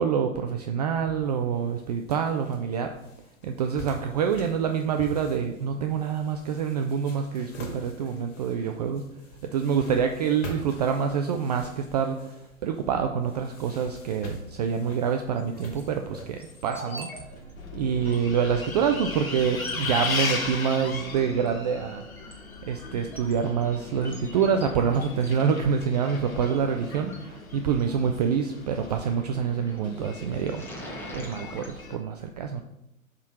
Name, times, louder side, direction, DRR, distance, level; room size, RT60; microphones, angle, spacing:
voice 1, 0.0-2.9 3.4-9.1 9.4-12.3 12.6-17.1 17.7-22.0 22.6-32.6, right 7 dB, 30° right, 5 dB, 0.4 m, -26 dB
sound 1, 1.0-18.4, equal, 55° left, 2.0 m, -45 dB
sound 2, 15.4-15.8 16.4-17.2 17.5-17.6 18.0-18.2 18.9-19.0 19.4-19.9 21.1-21.5 21.9-27.8 29.4-29.8 30.2-31.7, equal, 5° left, 1.3 m, -44 dB
Bus, 17.6-32.0, left 4 dB, 75° left, 1.7 m, -37 dB
7.3 x 3.7 x 5.6 m, 0.88 s
figure-of-eight pair, 110°, 42 cm